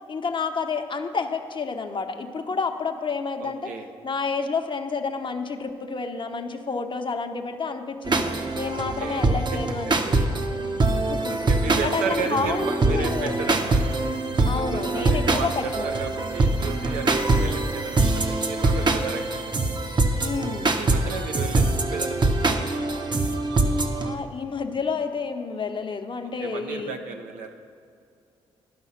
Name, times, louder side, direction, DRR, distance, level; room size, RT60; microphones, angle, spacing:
voice 1, 0.1-3.7 4.0-8.3 8.5-10.3 11.0-11.3 11.8-13.4 14.4-15.9 20.2-20.8 24.0-26.9, left 4 dB, 40° left, 6 dB, 0.8 m, -29 dB
voice 2, 3.4-3.9 9.0-9.2 11.3-13.8 14.6-19.5 20.6-21.6 21.9-23.1 26.4-27.5, right 5 dB, 80° right, 4 dB, 0.8 m, -34 dB
sound 1, 8.0-24.1, right 2 dB, 35° right, 0.8 m, -24 dB
11.0 x 5.6 x 5.7 m, 2.4 s
hypercardioid pair, 50°, 13 cm